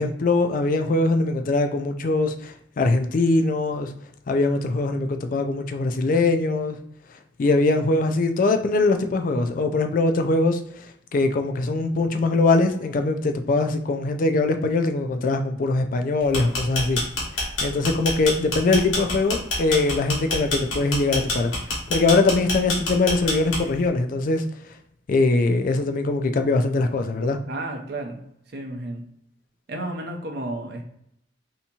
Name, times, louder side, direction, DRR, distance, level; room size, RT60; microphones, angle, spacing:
voice 1, 0.0-3.9 4.3-6.8 7.4-10.9 11.1-17.0 17.3-21.5 21.9-24.4 25.1-27.4, left 3 dB, 45° left, 7 dB, 0.3 m, -22 dB
sound 1, 16.2-23.9, left 2 dB, 80° left, 1.1 m, -26 dB
voice 2, 27.5-28.2 28.5-29.0 29.7-30.8, right 2 dB, 55° right, 3 dB, 0.6 m, -32 dB
3.4 x 2.8 x 2.8 m, 0.75 s
head